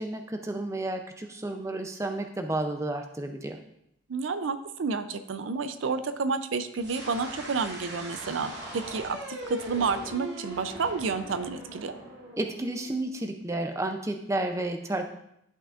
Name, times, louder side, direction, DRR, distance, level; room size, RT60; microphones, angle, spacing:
voice 1, 0.0-3.6 12.4-15.1, right 2 dB, 15° right, 5 dB, 0.4 m, -31 dB
voice 2, 4.1-11.9, right 4 dB, 75° right, 11 dB, 0.5 m, -30 dB
sound 1, 6.8-13.6, right 1 dB, 60° right, 2.0 m, -41 dB
11.0 x 5.7 x 2.5 m, 0.76 s
head